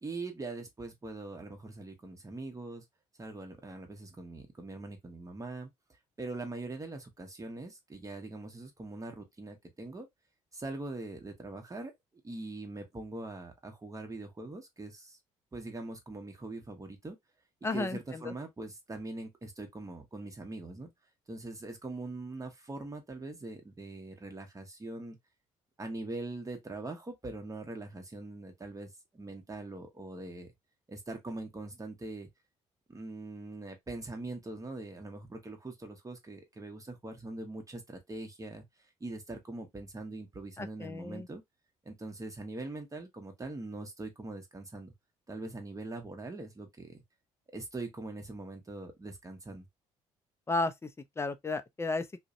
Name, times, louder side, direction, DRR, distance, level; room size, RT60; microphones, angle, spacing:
voice 1, 0.0-2.8 3.2-5.7 6.2-10.1 10.5-11.9 12.2-15.2 15.5-17.2 17.7-20.9 21.3-25.2 25.8-30.5 30.9-32.3 32.9-38.6 39.0-41.4 41.8-44.9 45.3-47.0 47.5-49.7, right 2 dB, 20° right, 1.0 m, -42 dB
voice 2, 17.6-18.3 40.6-41.3 50.5-50.9 51.2-52.1, left 3 dB, 15° left, 0.5 m, -33 dB
2.5 x 2.2 x 2.4 m
hypercardioid pair, 50°, 16 cm